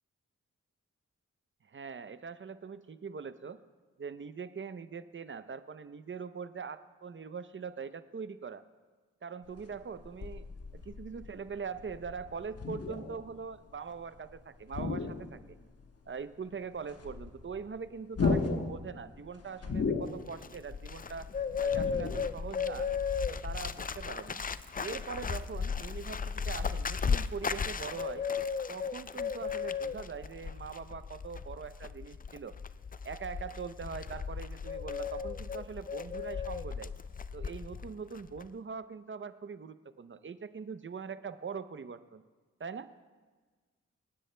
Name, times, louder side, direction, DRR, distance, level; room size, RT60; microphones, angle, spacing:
voice 1, 1.6-3.6 4.0-8.6 9.2-10.5 10.7-15.6 16.1-21.3 21.6-22.9 23.3-24.4 24.8-28.3 28.7-32.6 33.0-36.9 37.3-42.2 42.6-42.9, right 5 dB, 40° right, 12 dB, 0.7 m, -42 dB
sound 1, 9.5-14.3 14.6-15.9 16.2-16.3 16.5-22.3, left 4 dB, 55° left, 1.1 m, -35 dB
Bird, 20.1-37.9 38.1-38.5, left 6 dB, 30° left, 0.4 m, -35 dB
27.5 x 9.8 x 2.2 m, 1.4 s
cardioid pair, 50°, 30 cm